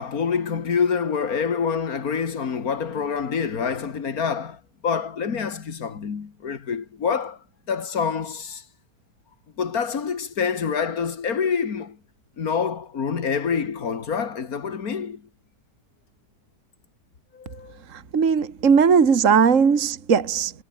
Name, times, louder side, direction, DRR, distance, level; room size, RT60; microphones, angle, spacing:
voice 1, 0.0-8.6 9.6-12.0 12.4-15.3 17.3-17.8, left 6 dB, 60° left, 2.4 m, -26 dB
voice 2, 17.9-20.5, right 6 dB, 50° right, 2.0 m, -18 dB
omnidirectional pair, 1.8 m